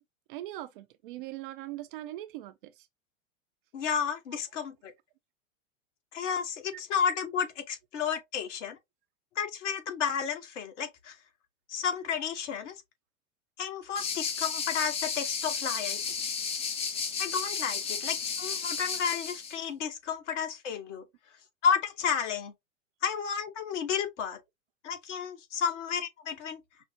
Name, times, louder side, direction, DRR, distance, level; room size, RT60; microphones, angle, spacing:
voice 1, 0.3-2.9 6.7-6.8, right 15 dB, 40° right, 0.4 m, -41 dB
voice 2, 3.7-4.9 6.1-8.8 9.3-11.2 11.7-12.7 13.6-16.0 17.2-21.0 21.6-22.5 23.0-24.4 24.8-26.6, left 7 dB, 60° left, 1.2 m, -32 dB
sound 1, 14.0-19.6, left 6 dB, 15° left, 0.4 m, -33 dB
5.6 x 2.0 x 2.6 m
hypercardioid pair, 100°, 41 cm